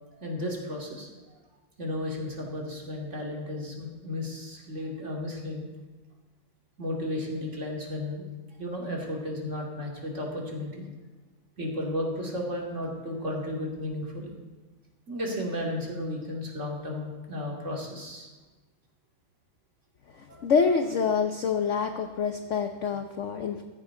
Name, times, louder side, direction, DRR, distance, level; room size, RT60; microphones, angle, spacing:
voice 1, 0.1-1.1 1.8-5.7 6.8-8.3 8.6-10.8 11.6-14.3 15.1-18.3 20.3-20.4, left 1 dB, 35° right, -1 dB, 2.7 m, -34 dB
voice 2, 20.1-23.6, left 5 dB, 60° left, 6 dB, 0.7 m, -26 dB
15.0 x 15.0 x 3.8 m, 1.2 s
omnidirectional pair, 2.2 m